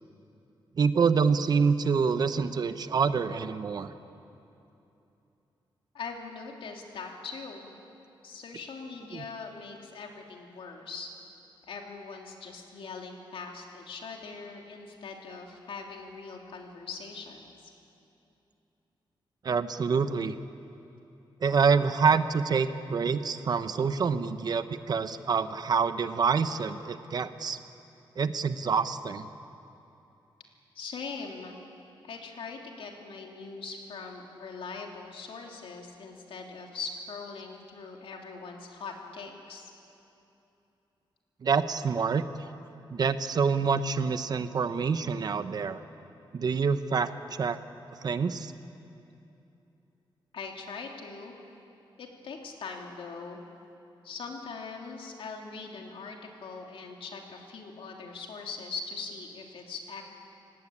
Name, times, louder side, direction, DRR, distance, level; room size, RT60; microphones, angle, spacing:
voice 1, 0.8-3.9 9.1-9.2 19.4-20.4 21.4-27.6 28.2-29.3 41.4-42.2 42.9-45.8 46.3-47.6 48.0-48.5, right 5 dB, 50° right, 11 dB, 0.9 m, -26 dB
voice 2, 5.9-7.7 8.2-11.1 11.7-17.7 30.7-31.5 32.0-39.7 50.3-51.3 52.0-53.4 54.0-60.0, left 4 dB, 85° left, 1 dB, 3.1 m, -41 dB
29.5 x 17.5 x 8.7 m, 2.9 s
wide cardioid pair, 160°, 9 cm